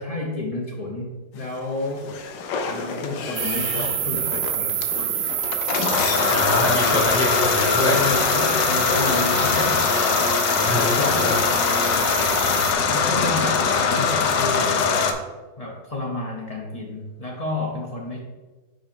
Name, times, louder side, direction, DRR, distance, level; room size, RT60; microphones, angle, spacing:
voice 1, 0.0-2.1 2.7-4.8 7.8-9.8 10.7-11.3 12.8-14.9 15.6-18.2, left 2 dB, 60° left, -2 dB, 0.3 m, -30 dB
sound 1, 2.0-15.1, left 5 dB, 80° left, 1.4 m, -22 dB
sound 2, 3.4-12.7, right 10 dB, 70° right, 0.9 m, -28 dB
voice 2, 6.3-8.0 10.6-11.4, left 1 dB, 10° left, -2 dB, 0.7 m, -24 dB
5.4 x 5.2 x 4.4 m, 1.3 s
omnidirectional pair, 1.9 m